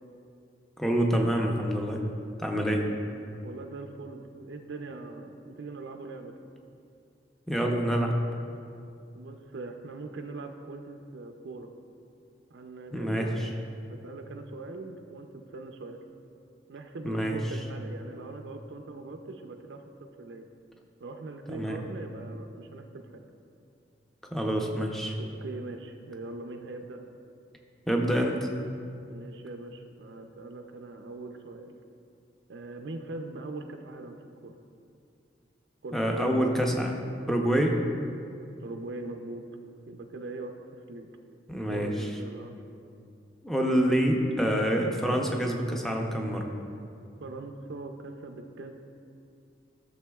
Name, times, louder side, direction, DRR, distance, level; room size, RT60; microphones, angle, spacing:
voice 1, 0.8-2.0 2.4-2.9 7.5-8.2 12.9-13.5 17.0-17.4 21.5-21.8 24.3-25.2 27.9-28.5 35.9-36.9 37.3-37.8 41.5-41.9 43.4-46.5, equal, ahead, 1 dB, 0.6 m, -26 dB
voice 2, 3.4-6.3 9.1-11.7 12.5-13.5 13.9-16.0 16.7-19.8 20.2-20.5 21.0-22.9 23.1-23.2 25.2-27.0 29.1-31.7 32.5-34.2 34.4-34.5 35.8-36.3 38.6-39.4 39.9-41.1 41.7-42.6 47.2-48.8, right 3 dB, 85° right, 4 dB, 0.5 m, -41 dB
13.0 x 6.9 x 2.3 m, 2.5 s
head